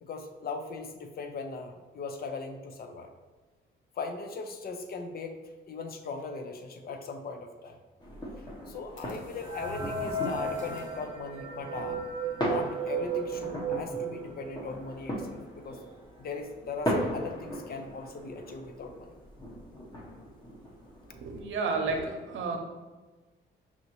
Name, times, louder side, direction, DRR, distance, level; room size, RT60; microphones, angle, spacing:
voice 1, 0.0-3.1 3.9-5.4 5.7-7.8 8.4-12.0 12.5-15.8 16.2-19.1, left 4 dB, 50° left, 6 dB, 0.6 m, -39 dB
sound 1, 8.0-21.4, equal, 20° left, 1.0 m, -38 dB
sound 2, 8.5-11.1, left 2 dB, 80° left, 0.8 m, -51 dB
sound 3, 9.4-14.8 15.3-15.4 15.6-15.7 16.5-16.6 16.9-17.3, right 4 dB, 25° right, 0.9 m, -35 dB
voice 2, 21.1-22.6, right 4 dB, 75° right, 2 dB, 0.8 m, -31 dB
5.6 x 2.7 x 3.0 m, 1.2 s
cardioid pair, 90°, 20 cm